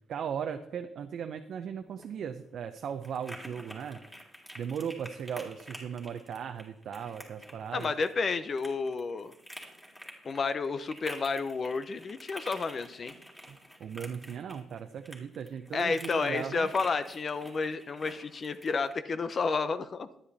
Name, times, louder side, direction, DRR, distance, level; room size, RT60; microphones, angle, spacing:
voice 1, 0.1-4.0 4.6-7.9 13.5-16.7, right 7 dB, 65° right, 6 dB, 0.6 m, -37 dB
sound 1, 1.8-19.0, equal, 5° left, 2.6 m, -49 dB
voice 2, 7.7-9.3 10.2-13.1 15.7-20.1, left 4 dB, 45° left, 12 dB, 0.6 m, -31 dB
10.0 x 9.9 x 4.1 m, 0.77 s
cardioid pair, 90°, 0 cm